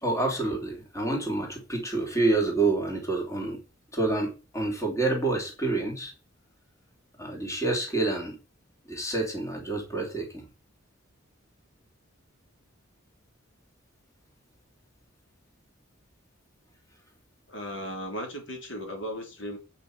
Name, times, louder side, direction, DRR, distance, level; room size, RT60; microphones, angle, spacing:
voice 1, 0.0-3.6 3.9-6.1 7.2-8.4 8.9-10.5, right 2 dB, 15° left, 3.0 m, -28 dB
voice 2, 17.5-19.6, equal, 65° left, 3.1 m, -36 dB
9.1 x 5.6 x 6.5 m
head